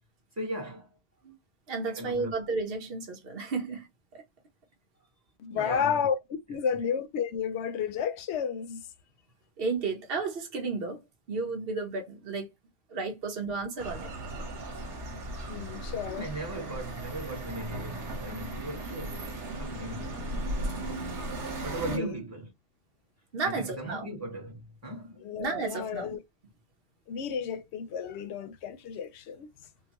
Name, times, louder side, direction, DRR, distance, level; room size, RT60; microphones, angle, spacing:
voice 1, 0.4-0.9 1.8-2.3 5.5-6.0 6.7-6.8 16.1-20.2 21.6-22.5 23.4-25.2, right 1 dB, 15° right, 1.2 m, -38 dB
voice 2, 1.7-3.9 4.1-4.2 9.6-12.5 12.9-14.1 21.9-22.1 23.3-24.1 25.4-26.2, right 4 dB, 55° right, 1.2 m, -33 dB
voice 3, 5.4-8.8 15.5-16.3 21.8-22.2 25.2-26.2 27.1-29.5, left 7 dB, 75° left, 0.8 m, -32 dB
sound 1, 13.8-22.0, right 1 dB, 70° right, 1.4 m, -37 dB
3.8 x 2.2 x 2.9 m
omnidirectional pair, 1.2 m